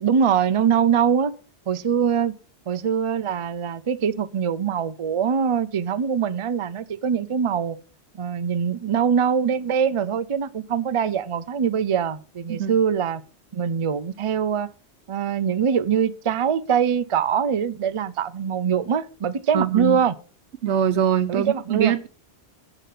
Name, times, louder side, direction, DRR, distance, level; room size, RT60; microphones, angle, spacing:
voice 1, 0.0-1.3 1.7-2.3 2.7-7.8 8.2-13.2 13.5-14.7 15.1-20.1 21.3-21.9, right 7 dB, 40° right, 0.5 m, -23 dB
voice 2, 19.5-20.0 20.6-22.1, right 9 dB, 80° right, 1.1 m, -22 dB
9.0 x 5.6 x 7.5 m
omnidirectional pair, 1.2 m